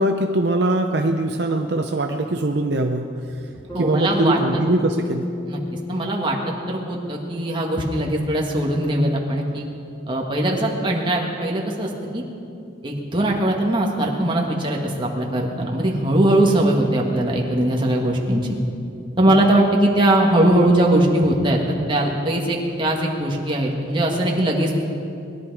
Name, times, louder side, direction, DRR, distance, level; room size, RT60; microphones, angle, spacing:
voice 1, 0.0-3.1 3.8-5.3 19.2-19.4, right 1 dB, 55° right, 4 dB, 0.7 m, -22 dB
Bass guitar, 3.7-8.1, left 2 dB, 15° left, 2.5 m, -31 dB
voice 2, 3.7-4.4 5.4-5.6 5.9-9.7 10.1-12.2 12.8-18.6 19.2-21.6 21.9-24.7, right 1 dB, 25° right, -1 dB, 1.7 m, -20 dB
20.5 x 11.5 x 4.8 m, 2.6 s
head